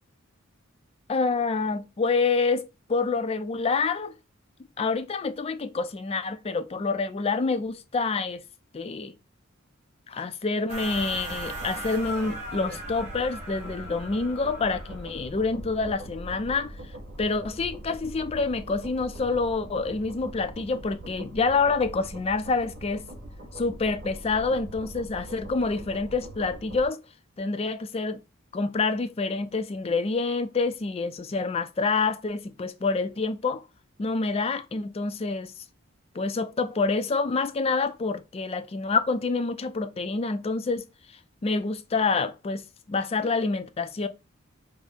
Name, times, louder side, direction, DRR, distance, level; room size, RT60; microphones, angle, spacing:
voice 1, 1.1-4.1 4.8-8.4 8.7-9.1 10.1-16.8 17.2-23.0 23.5-27.0 27.4-28.2 28.5-33.6 34.0-35.5 36.1-40.9 41.4-42.6 42.9-44.1, left 4 dB, 30° left, 0.4 m, -27 dB
sound 1, 10.7-15.2, right 1 dB, 35° right, 1.5 m, -39 dB
sound 2, 10.7-26.9, right 1 dB, 55° right, 0.7 m, -42 dB
4.8 x 2.0 x 2.6 m
head